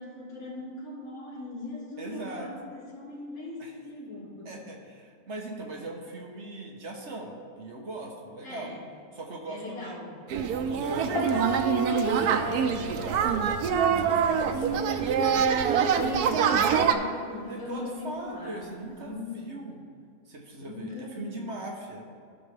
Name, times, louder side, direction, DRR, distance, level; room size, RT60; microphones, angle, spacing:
voice 1, 0.0-4.6 8.4-8.9 9.4-10.2 15.3-19.5 20.6-21.5, left 2 dB, 75° left, -8 dB, 2.6 m, -40 dB
voice 2, 2.0-2.5 3.6-3.7 4.4-8.7 9.1-10.0 10.5-15.1 17.5-19.8 20.3-22.0, right 2 dB, 50° right, 0 dB, 1.3 m, -40 dB
sound 1, 10.3-16.9, right 7 dB, 85° right, 1.1 m, -25 dB
Piano, 11.1-14.2 14.5-15.0, left 4 dB, 60° left, 2.1 m, -35 dB
14.5 x 6.1 x 3.3 m, 2.3 s
omnidirectional pair, 1.6 m